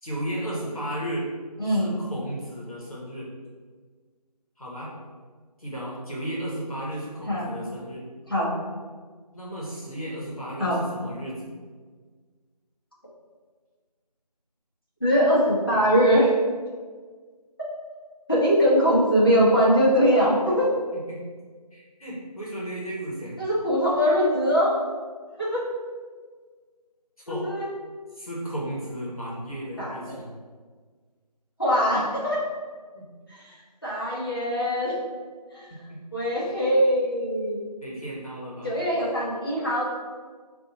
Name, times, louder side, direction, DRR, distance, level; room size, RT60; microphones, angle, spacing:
voice 1, 0.0-1.3 1.6-3.3 4.6-4.9 5.6-8.0 9.3-11.5 20.9-21.2 21.7-23.4 27.3-27.5 28.1-30.3 32.9-33.1 35.9-36.0 36.6-36.7 37.8-38.8, right 1 dB, 60° left, -5 dB, 1.2 m, -34 dB
voice 2, 1.6-2.0 7.3-7.5 8.3-8.5 10.6-10.8 15.0-16.3 18.3-20.7 23.4-24.8 25.4-25.6 27.3-27.7 29.8-30.1 31.6-32.5 33.3-33.4 33.8-34.9 35.5-35.7 36.1-37.6 38.6-39.8, equal, 35° left, -8 dB, 1.0 m, -22 dB
5.1 x 2.6 x 2.7 m, 1.5 s
figure-of-eight pair, 180°, 21 cm